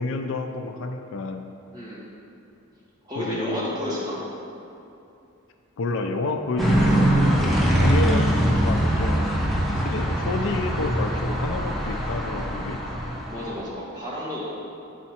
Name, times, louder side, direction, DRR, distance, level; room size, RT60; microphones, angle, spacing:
voice 1, 0.0-1.4 3.2-3.7 5.8-9.3 9.8-12.8, left 3 dB, 65° left, 6 dB, 0.4 m, -29 dB
voice 2, 1.7-2.0 3.0-4.2 9.0-9.3 13.3-14.4, left 1 dB, 20° right, -7 dB, 1.7 m, -31 dB
sound 1, 6.6-13.5, right 1 dB, ahead, 0.9 m, -22 dB
7.2 x 5.6 x 4.3 m, 2.7 s
head